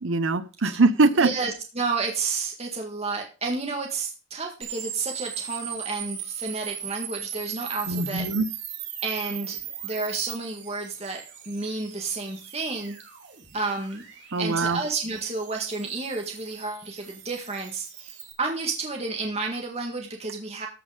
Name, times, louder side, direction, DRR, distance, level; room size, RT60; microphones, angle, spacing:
voice 1, 0.0-1.3 7.9-8.5 14.3-14.8, right 3 dB, 75° right, 13 dB, 0.8 m, -22 dB
voice 2, 1.2-8.3 9.0-9.6 9.8-13.0 13.5-14.0 14.4-18.1 18.4-20.7, right 3 dB, 30° right, 1 dB, 1.7 m, -31 dB
sound 1, 4.6-18.3, right 9 dB, 60° right, 3.3 m, -39 dB
14.5 x 5.6 x 5.0 m, 0.33 s
head